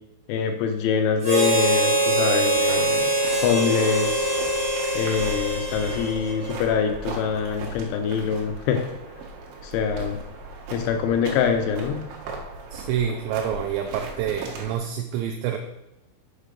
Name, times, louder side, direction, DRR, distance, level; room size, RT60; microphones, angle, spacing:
voice 1, 0.3-3.0 3.4-4.3 5.0-8.8 9.6-10.2 10.7-12.0, left 6 dB, 80° left, 5 dB, 2.9 m, -24 dB
Harmonica, 1.2-6.7, right 1 dB, 30° right, 1.1 m, -23 dB
sound 1, 2.6-14.8, right 2 dB, 65° right, 2.5 m, -37 dB
voice 2, 12.7-15.6, right 9 dB, 85° right, 4 dB, 2.6 m, -27 dB
7.5 x 5.6 x 5.1 m, 0.94 s
omnidirectional pair, 5.8 m